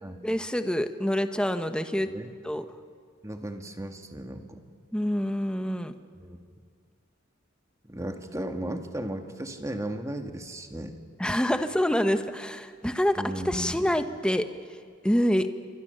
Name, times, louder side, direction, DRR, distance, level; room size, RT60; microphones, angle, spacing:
voice 1, 0.2-2.1 2.4-2.6 4.9-5.9 11.2-14.4 15.0-15.5, equal, 5° left, 8 dB, 1.1 m, -26 dB
voice 2, 3.2-4.6 6.2-6.4 7.8-10.9 13.2-13.8, right 1 dB, 15° right, 5 dB, 1.8 m, -35 dB
28.0 x 24.0 x 6.8 m, 2.1 s
head